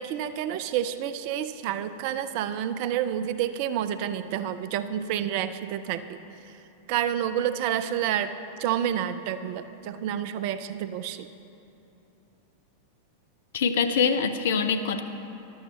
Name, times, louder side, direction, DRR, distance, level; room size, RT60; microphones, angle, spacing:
voice 1, 0.0-6.2 6.9-8.3 8.6-11.3, right 10 dB, 45° right, 12 dB, 0.4 m, -29 dB
voice 2, 13.5-15.0, left 6 dB, 60° left, 9 dB, 0.6 m, -24 dB
13.5 x 12.0 x 3.3 m, 2.8 s
figure-of-eight pair, 90°, 0 cm